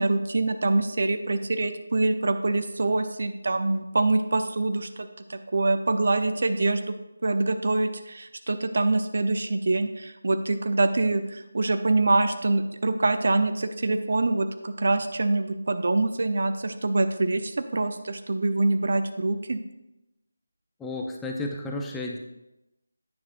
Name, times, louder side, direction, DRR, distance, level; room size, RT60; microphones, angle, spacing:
voice 1, 0.0-6.9 7.2-19.6, right 2 dB, 55° right, 8 dB, 0.7 m, -25 dB
voice 2, 20.8-22.2, left 2 dB, 5° left, 0 dB, 0.7 m, -32 dB
10.5 x 9.6 x 2.6 m, 0.93 s
figure-of-eight pair, 160°, 0 cm